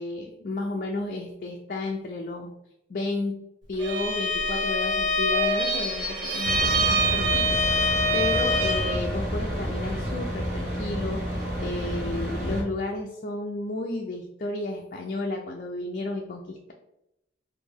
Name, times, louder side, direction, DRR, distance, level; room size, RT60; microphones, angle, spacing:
voice 1, 0.0-2.5 2.9-3.4 3.7-16.7, left 2 dB, 45° left, 0 dB, 0.4 m, -32 dB
Bowed string instrument, 3.8-9.1, equal, 80° right, 1.2 m, -25 dB
sound 1, 6.4-12.6, equal, 50° right, 1.1 m, -30 dB
4.1 x 2.6 x 3.4 m, 0.85 s
head